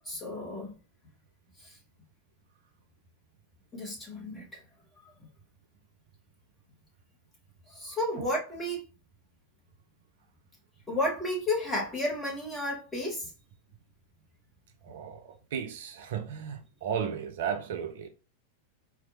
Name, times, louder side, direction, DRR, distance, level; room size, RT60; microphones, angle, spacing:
voice 1, 0.0-0.7 1.6-1.8 3.7-4.6 5.0-5.1 7.7-8.8 10.9-13.3, left 1 dB, 15° left, 1.3 m, -32 dB
voice 2, 14.8-18.1, right 8 dB, 55° right, 0.4 m, -35 dB
4.3 x 2.4 x 2.6 m
figure-of-eight pair, 90°, 0 cm